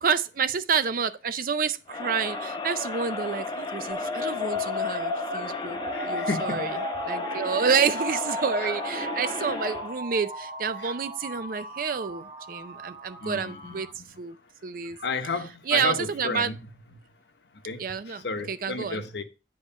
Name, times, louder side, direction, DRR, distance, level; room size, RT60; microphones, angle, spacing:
voice 1, 0.0-6.8 7.0-13.9 14.2-14.4 14.6-15.0 15.7-16.5 17.8-19.0, right 6 dB, 50° right, 0.5 m, -29 dB
Crowd, 1.9-10.0, left 3 dB, 25° left, 0.8 m, -34 dB
sound 1, 3.9-13.9, left 1 dB, 35° right, 1.1 m, -35 dB
voice 2, 5.9-6.7 8.6-8.8 10.8-10.9 13.2-14.2 15.0-16.6 17.6-19.2, left 3 dB, 75° left, 0.9 m, -33 dB
8.6 x 3.0 x 5.4 m
head